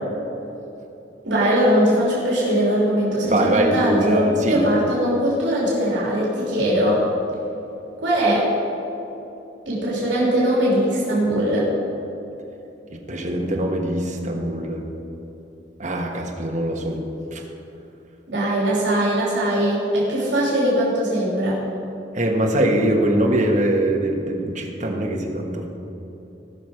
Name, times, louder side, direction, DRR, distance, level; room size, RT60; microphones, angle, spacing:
voice 1, 1.2-7.0 8.0-8.4 9.7-11.7 18.3-21.6, equal, 70° right, -6 dB, 3.1 m, -20 dB
voice 2, 3.2-4.6 13.1-14.8 15.8-17.0 17.3-17.4 22.1-25.7, right 1 dB, 40° right, 0 dB, 1.4 m, -22 dB
18.5 x 6.2 x 5.0 m, 3.0 s
head